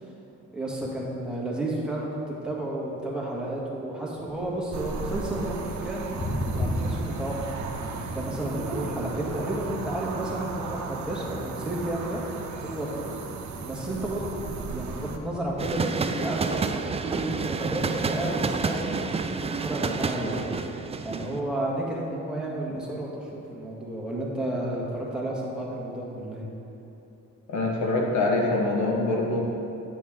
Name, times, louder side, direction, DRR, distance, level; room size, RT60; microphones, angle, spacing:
voice 1, 0.5-6.1 6.5-7.3 7.7-12.2 12.6-13.1 13.6-15.9 16.2-19.0 19.6-20.5 21.0-26.4, right 1 dB, 5° right, -5 dB, 1.8 m, -32 dB
Thunder, 4.1-15.8, left 1 dB, 35° left, 1.1 m, -37 dB
sound 1, 4.7-15.2, right 4 dB, 70° right, 0.8 m, -36 dB
sound 2, 15.6-21.4, right 4 dB, 20° right, 0.4 m, -29 dB
voice 2, 27.5-29.4, left 2 dB, 70° left, -1 dB, 1.5 m, -24 dB
9.1 x 6.4 x 3.8 m, 3.0 s
cardioid pair, 90°, 30 cm